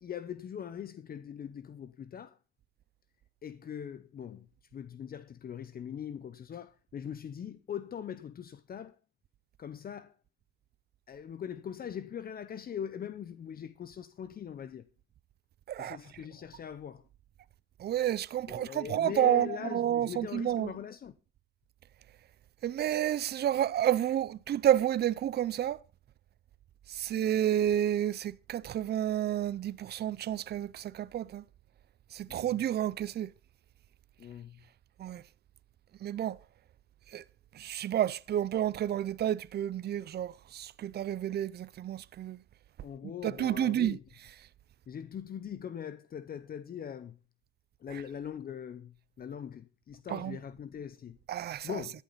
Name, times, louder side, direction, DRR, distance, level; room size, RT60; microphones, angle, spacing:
voice 1, 0.0-2.4 3.4-4.5 4.7-9.0 9.6-10.1 11.1-14.9 15.8-17.0 18.5-21.1 32.3-32.6 34.2-34.6 42.8-44.0 44.9-47.2 47.8-51.2 51.6-52.0, left 8 dB, 50° left, 0.8 m, -41 dB
voice 2, 17.8-20.8 22.6-25.8 26.9-31.4 32.1-33.3 35.0-35.2 36.0-36.4 37.1-37.2 37.6-42.4 43.2-44.0 47.9-48.0 50.1-50.4 51.3-51.8, right 11 dB, 55° right, 0.6 m, -30 dB
13.0 x 11.0 x 4.0 m
cardioid pair, 90°, 20 cm